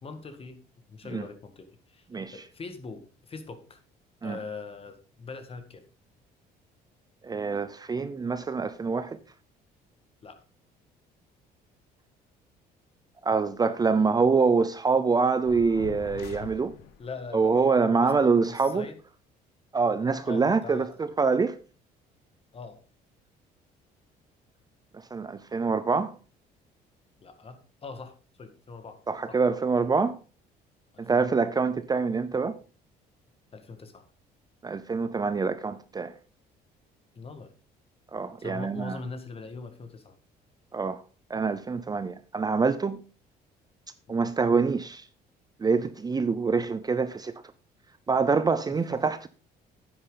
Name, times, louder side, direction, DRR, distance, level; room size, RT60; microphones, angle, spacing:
voice 1, 0.0-0.6 0.9-3.8 4.2-5.8 10.2-10.4 17.0-19.0 20.2-20.9 22.5-22.8 27.2-29.0 29.3-29.4 30.9-31.3 33.5-34.1 37.1-37.5 38.4-40.2 44.1-44.2 48.7-49.0, left 4 dB, 35° left, 1.8 m, -42 dB
voice 2, 7.2-9.2 13.2-16.7 17.3-18.9 19.7-21.6 24.9-26.2 29.1-30.2 31.0-32.6 34.6-36.1 38.1-39.0 40.7-41.0 41.3-43.0 44.1-45.0 45.6-47.3 48.1-49.3, right 4 dB, 25° right, 0.6 m, -25 dB
sound 1, 15.5-17.1, left 7 dB, 75° left, 1.5 m, -43 dB
9.8 x 8.6 x 3.9 m
cardioid pair, 110°, 17 cm